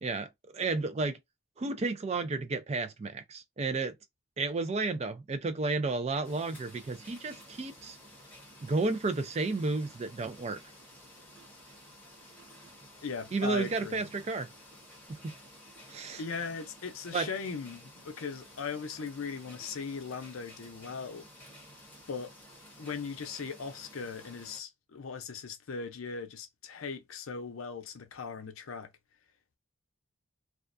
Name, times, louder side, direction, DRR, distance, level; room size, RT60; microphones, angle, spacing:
voice 1, 0.0-1.2 1.6-4.0 4.4-8.0 8.6-10.6 13.3-14.5 15.1-15.3 15.9-16.2 17.1-17.3, right 3 dB, 30° right, 0.3 m, -32 dB
sound 1, 6.2-24.6, equal, 10° left, 0.7 m, -53 dB
voice 2, 13.0-14.1 16.2-21.3 22.1-22.3 22.8-28.9, left 5 dB, 85° left, 0.6 m, -39 dB
2.4 x 2.2 x 2.5 m
head